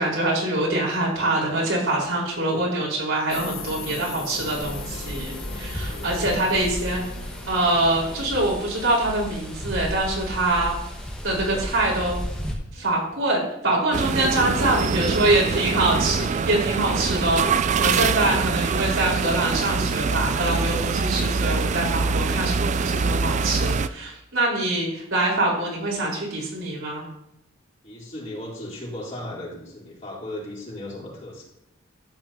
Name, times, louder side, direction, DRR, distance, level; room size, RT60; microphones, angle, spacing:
voice 1, 0.0-7.0 7.5-10.8 11.2-12.2 12.7-17.5 17.8-27.1, right 2 dB, 75° right, -3 dB, 4.5 m, -24 dB
sound 1, 3.3-9.4, left 4 dB, 85° left, 1.5 m, -39 dB
sound 2, 4.6-12.5, equal, 5° left, 1.5 m, -34 dB
voice 2, 5.9-6.6 11.5-11.7 12.8-12.9 14.6-15.6 27.8-31.4, left 1 dB, 35° left, -5 dB, 3.6 m, -37 dB
City Skyline Close Perspective Distant Voices Traffic, 13.9-23.9, right 5 dB, 35° right, 0.3 m, -24 dB
12.5 x 9.2 x 2.9 m, 0.81 s
head